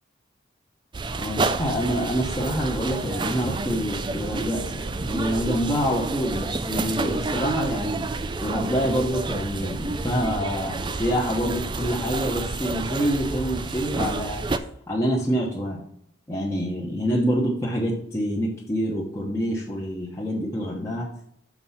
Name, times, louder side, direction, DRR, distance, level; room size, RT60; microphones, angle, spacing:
sound 1, 0.9-14.6, right 3 dB, 25° right, 0.3 m, -29 dB
voice 1, 1.2-15.8 16.3-21.1, equal, 15° left, -5 dB, 1.0 m, -26 dB
6.1 x 4.5 x 5.6 m, 0.71 s
head